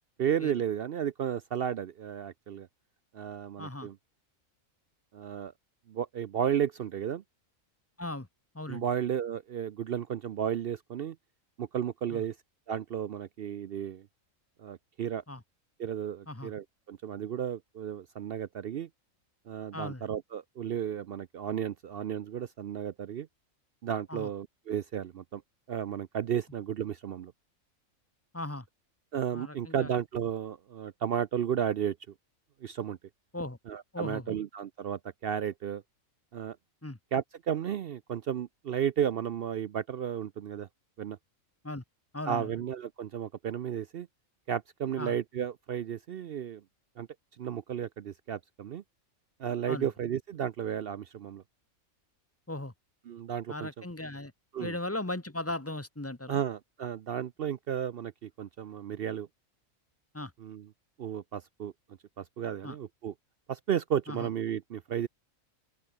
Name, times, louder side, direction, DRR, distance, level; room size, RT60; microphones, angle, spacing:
voice 1, 0.2-2.7 3.1-4.0 5.1-5.5 5.9-7.2 8.7-11.2 11.6-12.4 12.7-14.1 14.6-15.2 15.8-18.9 19.5-23.3 23.8-25.4 25.7-27.3 29.1-32.0 32.6-33.0 33.7-35.8 36.3-36.6 37.1-40.7 41.0-41.2 42.3-44.1 44.5-46.6 47.0-47.1 47.4-48.8 49.4-51.4 53.1-53.8 54.5-54.7 56.3-59.3 60.4-60.7 61.0-61.7 62.2-63.1 63.5-65.1, right 9 dB, 60° right, 0.6 m, -33 dB
voice 2, 3.6-3.9 8.0-8.3 8.5-8.8 12.1-12.2 15.3-15.4 16.3-16.5 19.7-20.0 24.1-24.3 28.3-28.6 29.3-29.9 33.3-33.6 33.9-34.4 36.8-37.0 41.6-41.8 42.1-42.5 45.0-45.1 49.7-49.9 52.5-52.7 53.5-54.3 54.6-56.4 60.1-60.3 62.6-62.8 64.1-64.3, left 1 dB, 10° left, 1.4 m, -37 dB
omnidirectional pair, 1.4 m